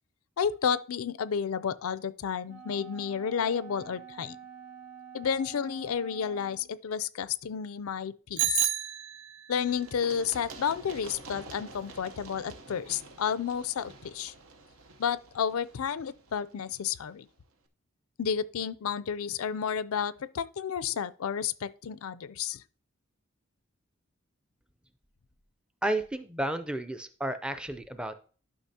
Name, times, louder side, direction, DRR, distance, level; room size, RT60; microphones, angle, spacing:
voice 1, 0.4-4.4 5.1-8.7 9.5-14.3 15.0-17.3 18.2-22.6, left 7 dB, 90° left, 0.4 m, -31 dB
Wind instrument woodwind instrument, 2.5-6.8, right 7 dB, 35° right, 2.5 m, -48 dB
Bicycle bell, 8.4-9.6, right 12 dB, 55° right, 0.5 m, -30 dB
Run, 9.7-17.3, right 3 dB, 80° right, 0.9 m, -49 dB
voice 2, 25.8-28.1, right 1 dB, 5° right, 0.5 m, -32 dB
11.5 x 5.8 x 2.8 m
head